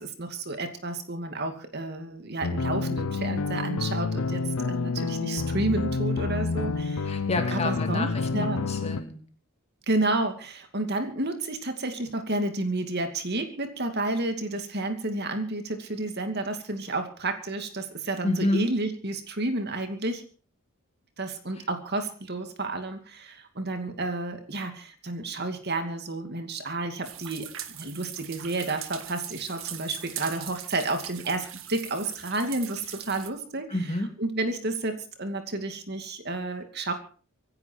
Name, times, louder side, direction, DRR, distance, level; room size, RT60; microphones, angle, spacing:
voice 1, 0.0-7.2 7.5-8.7 9.9-20.2 21.2-33.7 34.2-36.9, right 2 dB, 50° right, 6 dB, 2.5 m, -31 dB
sound 1, 2.4-9.0, left 4 dB, 85° left, 0.7 m, -29 dB
voice 2, 7.0-9.2 18.2-18.6 21.5-21.6 33.7-34.1, left 1 dB, 30° left, 5 dB, 3.0 m, -29 dB
sound 2, 27.0-33.3, right 11 dB, 65° right, 1.7 m, -41 dB
25.5 x 10.5 x 4.6 m, 0.40 s
head